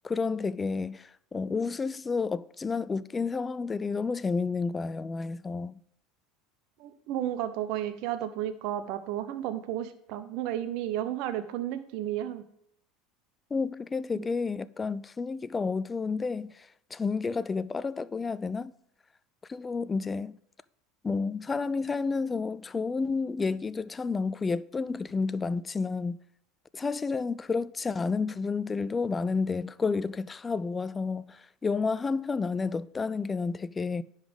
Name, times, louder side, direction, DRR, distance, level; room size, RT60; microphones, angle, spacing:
voice 1, 0.0-5.8 13.5-18.7 19.5-20.4 21.0-26.2 26.7-34.0, left 4 dB, 20° left, 0.3 m, -30 dB
voice 2, 6.8-12.4 14.1-14.3, right 11 dB, 60° right, 0.7 m, -33 dB
10.0 x 4.0 x 5.2 m
hypercardioid pair, 80°, 0 cm